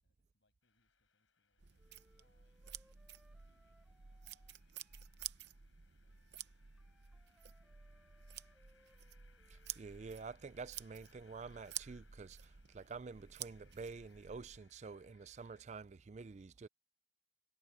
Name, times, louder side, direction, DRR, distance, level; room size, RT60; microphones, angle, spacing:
voice 1, 0.0-6.5 7.1-8.9, left 2 dB, 65° left, 6.9 m, -84 dB
sound 1, 0.6-15.6, left 6 dB, 90° left, 7.1 m, -74 dB
sound 2, 1.6-14.6, right 11 dB, 60° right, 0.8 m, -52 dB
Wind instrument woodwind instrument, 1.8-5.3 6.1-9.8, equal, 5° right, 6.7 m, -73 dB
voice 2, 9.5-16.7, right 4 dB, 35° right, 0.4 m, -49 dB
head